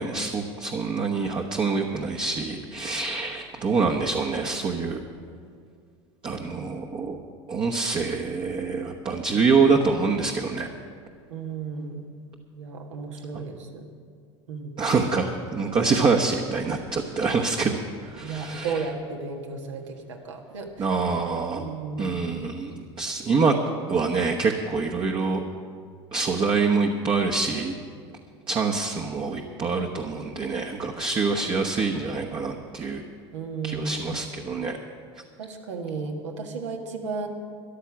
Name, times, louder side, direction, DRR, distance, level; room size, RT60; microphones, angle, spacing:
voice 1, 0.0-5.0 6.2-7.2 7.5-10.7 13.3-13.4 14.8-18.9 20.8-21.7 22.0-23.6 23.9-25.4 26.1-27.7 28.5-33.0 33.6-34.8, right 4 dB, 35° right, 1 dB, 1.1 m, -25 dB
voice 2, 6.4-6.7 11.3-12.0 12.5-13.9 14.5-15.0 18.2-20.8 21.5-22.1 33.3-34.0 35.4-37.3, right 4 dB, 80° right, 2 dB, 1.6 m, -34 dB
13.5 x 11.0 x 6.0 m, 2.1 s
hypercardioid pair, 85°, 15 cm